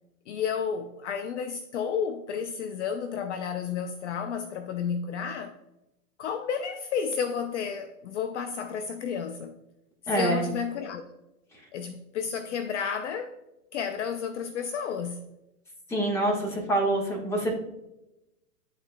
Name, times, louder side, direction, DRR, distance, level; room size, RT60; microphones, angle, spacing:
voice 1, 0.3-5.5 6.2-9.6 10.1-11.0 11.7-13.3 13.7-15.2, left 7 dB, 50° left, 0.5 m, -31 dB
voice 2, 10.1-10.5 15.9-17.5, right 1 dB, 5° left, 1.3 m, -26 dB
11.0 x 4.1 x 2.2 m
hypercardioid pair, 145°, 46 cm